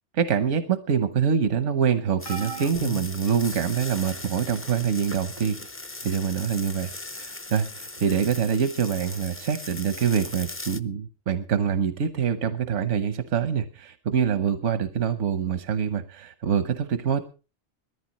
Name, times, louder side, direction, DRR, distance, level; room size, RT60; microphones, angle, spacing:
voice 1, 0.1-5.6 6.0-17.2, right 7 dB, 85° right, 9 dB, 1.2 m, -25 dB
sound 1, 2.2-4.0 4.8-5.0 6.3-6.4, right 1 dB, 50° left, 1.2 m, -38 dB
sound 2, 2.2-10.8, left 2 dB, 20° left, 0.4 m, -39 dB
21.0 x 14.0 x 3.0 m, 0.33 s
omnidirectional pair, 1.2 m